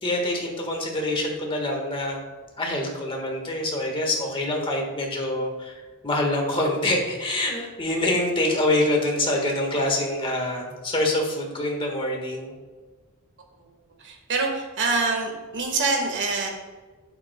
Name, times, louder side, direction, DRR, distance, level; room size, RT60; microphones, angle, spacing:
voice 1, 0.0-2.2 2.6-12.5, left 1 dB, 25° left, 1 dB, 1.5 m, -25 dB
voice 2, 14.0-16.5, right 3 dB, 55° right, 2 dB, 1.5 m, -25 dB
11.0 x 7.9 x 2.2 m, 1.4 s
head